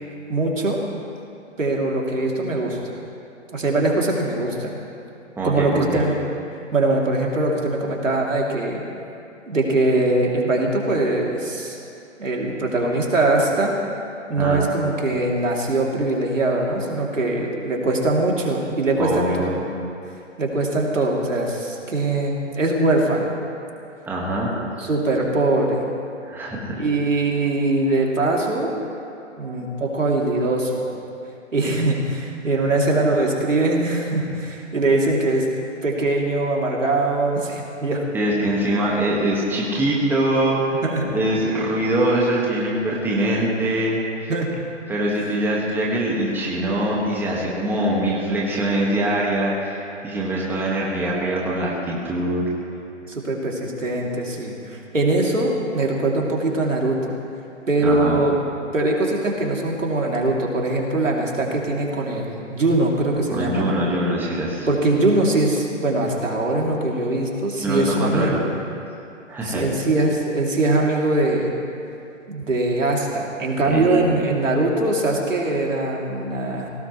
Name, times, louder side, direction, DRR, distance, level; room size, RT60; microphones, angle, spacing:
voice 1, 0.3-0.8 1.6-3.0 3.5-4.8 5.4-6.2 6.7-8.9 9.4-11.8 12.2-13.7 14.3-19.5 20.4-23.3 24.8-25.9 26.8-28.7 29.4-30.8 31.5-35.5 35.8-38.1 40.8-41.1 44.3-44.5 53.0-57.1 57.7-58.4 58.7-63.7 64.7-68.5 69.4-71.5 72.3-76.7, right 2 dB, 90° right, -2 dB, 3.0 m, -22 dB
voice 2, 5.4-6.0 14.4-14.7 19.0-19.7 24.1-24.5 26.2-26.8 29.4-29.8 38.1-40.8 41.1-44.3 44.9-52.4 57.8-58.2 63.3-64.7 67.6-68.4 69.3-69.6 73.7-74.1, right 1 dB, 5° right, -4 dB, 1.6 m, -23 dB
21.0 x 17.5 x 3.2 m, 2.7 s
hypercardioid pair, 145°, 37 cm